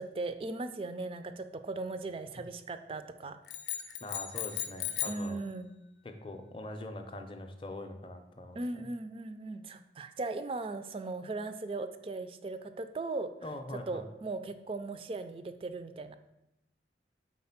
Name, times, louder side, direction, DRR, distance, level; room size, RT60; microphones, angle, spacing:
voice 1, 0.0-3.4 5.0-5.7 8.5-13.3 13.9-16.2, right 3 dB, 30° right, 10 dB, 0.3 m, -38 dB
sound 1, 3.5-5.3, left 10 dB, 75° left, 0.5 m, -36 dB
voice 2, 4.0-5.4 6.0-8.8 13.4-14.1, left 1 dB, 30° left, 5 dB, 0.5 m, -43 dB
4.3 x 4.2 x 5.7 m, 0.92 s
head